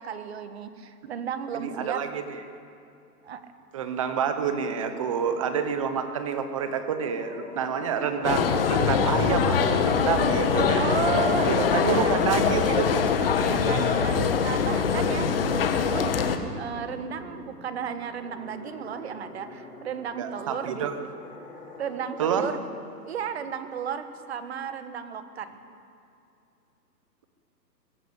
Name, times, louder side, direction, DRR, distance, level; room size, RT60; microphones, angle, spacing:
voice 1, 0.0-2.0 3.2-3.5 10.8-12.1 13.4-16.3 16.6-21.0 21.8-22.6 23.0-25.6, right 8 dB, 40° right, 10 dB, 1.5 m, -34 dB
voice 2, 1.6-2.2 3.7-10.8 11.4-13.0 13.8-14.3 20.2-21.0 22.2-22.5, right 7 dB, 20° right, 8 dB, 1.0 m, -28 dB
sound 1, 6.6-22.4, left 2 dB, 10° left, 3.2 m, -46 dB
sound 2, 8.2-16.4, left 6 dB, 35° left, 1.4 m, -23 dB
22.5 x 15.5 x 8.4 m, 2.6 s
hypercardioid pair, 165°, 49 cm